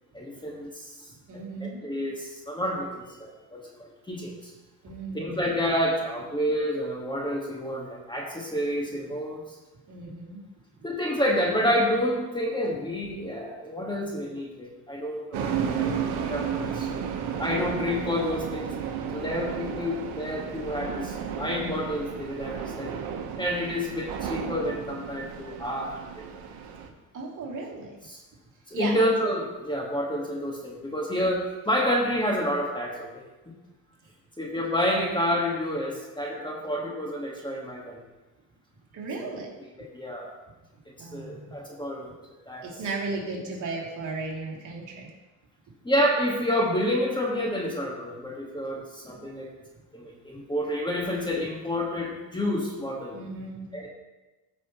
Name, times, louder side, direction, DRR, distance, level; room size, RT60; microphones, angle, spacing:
voice 1, 0.1-0.9 1.6-4.5 5.1-9.4 10.8-16.9 17.4-18.7 19.1-23.0 23.4-26.3 28.1-28.2 28.7-33.2 34.4-38.0 39.2-39.4 39.8-40.3 41.0-42.1 42.5-42.7 43.7-43.8 45.8-49.5 49.9-53.2 53.7-53.9, equal, 10° left, -2 dB, 1.6 m, -29 dB
voice 2, 1.3-1.8 4.8-5.4 9.9-10.4 27.1-28.0 28.7-29.0 38.9-39.5 41.0-41.6 42.6-45.1 53.1-53.7, right 3 dB, 50° right, -4 dB, 3.0 m, -35 dB
sound 1, 15.3-26.9, right 7 dB, 75° right, 1.2 m, -33 dB
14.5 x 6.2 x 3.0 m, 1.1 s
cardioid pair, 95°, 40 cm